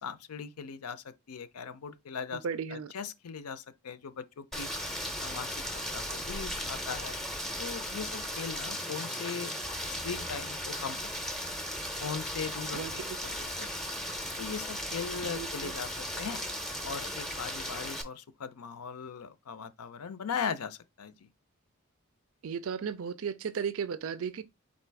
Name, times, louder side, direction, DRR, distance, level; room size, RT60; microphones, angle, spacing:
voice 1, 0.0-2.4 2.7-4.7 5.2-7.2 7.6-9.5 9.8-11.3 12.0-13.9 14.4-16.4 16.8-21.3, left 6 dB, 85° left, 0.5 m, -39 dB
voice 2, 2.4-2.9 12.7-13.2 15.3-15.7 22.4-24.4, right 6 dB, 70° right, 0.4 m, -35 dB
Rain, 4.5-18.0, equal, ahead, 0.5 m, -36 dB
4.2 x 2.4 x 4.6 m
head